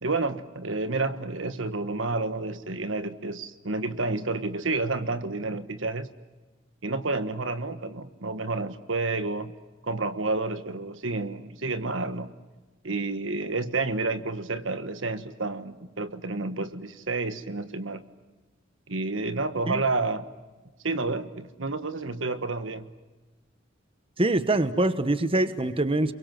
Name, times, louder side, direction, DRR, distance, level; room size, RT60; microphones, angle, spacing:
voice 1, 0.0-6.1 6.8-9.5 9.8-12.3 12.8-18.0 18.9-20.3 20.8-22.9, right 3 dB, 75° right, 11 dB, 1.4 m, -30 dB
voice 2, 24.2-26.1, right 2 dB, 30° right, 12 dB, 1.2 m, -24 dB
29.0 x 23.0 x 7.5 m, 1.2 s
head